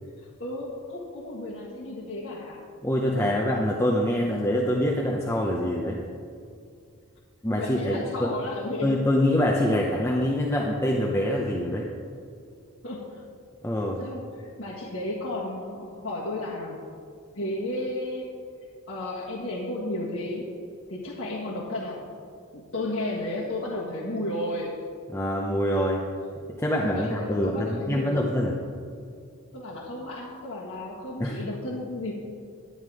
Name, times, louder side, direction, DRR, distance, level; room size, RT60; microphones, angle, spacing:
voice 1, 0.4-2.6 3.1-3.4 7.5-9.0 12.8-13.2 14.0-16.8 17.3-18.3 18.9-20.5 20.9-22.0 22.5-24.8 26.8-28.3 29.5-32.1, left 1 dB, 55° left, -7 dB, 1.6 m, -33 dB
voice 2, 2.8-6.0 7.4-8.3 8.8-11.9 13.6-14.0 25.1-26.0 26.6-28.6 31.2-31.4, left 1 dB, 10° left, -2 dB, 0.7 m, -25 dB
11.0 x 9.3 x 4.8 m, 2.3 s
head